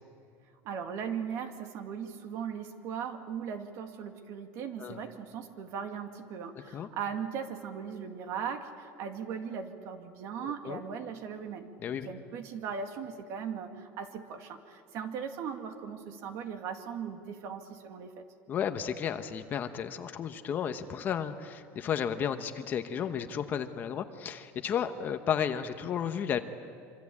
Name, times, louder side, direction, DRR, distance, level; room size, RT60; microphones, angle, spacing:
voice 1, 0.6-18.2, right 7 dB, 50° right, 6 dB, 2.2 m, -38 dB
voice 2, 10.4-10.8 11.8-12.1 18.5-26.4, left 8 dB, 30° left, 8 dB, 1.0 m, -33 dB
26.0 x 25.5 x 8.6 m, 2.4 s
cardioid pair, 170°, 7 cm